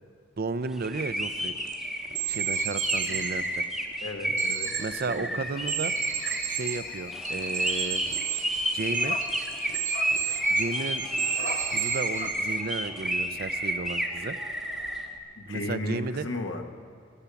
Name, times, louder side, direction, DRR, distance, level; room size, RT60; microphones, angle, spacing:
voice 1, 0.4-1.5 2.3-3.6 4.8-5.9 6.5-8.0 8.7-9.2 10.5-11.1 11.7-14.4 15.5-16.3, right 4 dB, 50° right, 12 dB, 0.5 m, -33 dB
sound 1, 0.8-15.1, right 1 dB, ahead, 1.2 m, -30 dB
sound 2, 1.7-1.8 2.1-3.3 4.4-5.0 5.6-6.8 7.3-12.4, right 12 dB, 85° right, 3.0 m, -33 dB
voice 2, 4.0-4.7 5.1-5.3 15.4-16.6, left 2 dB, 70° left, 4 dB, 1.3 m, -34 dB
sound 3, 5.4-12.3, left 4 dB, 50° left, 1.1 m, -40 dB
22.0 x 8.4 x 6.9 m, 2.4 s
head